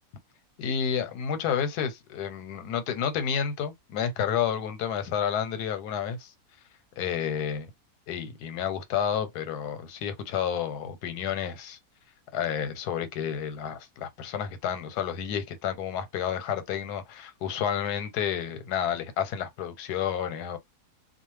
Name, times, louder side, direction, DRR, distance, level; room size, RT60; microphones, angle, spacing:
voice 1, 0.6-6.3 7.0-7.7 8.1-11.8 12.3-20.6, left 8 dB, 90° left, 1.2 m, -30 dB
2.4 x 2.3 x 3.1 m
omnidirectional pair, 1.7 m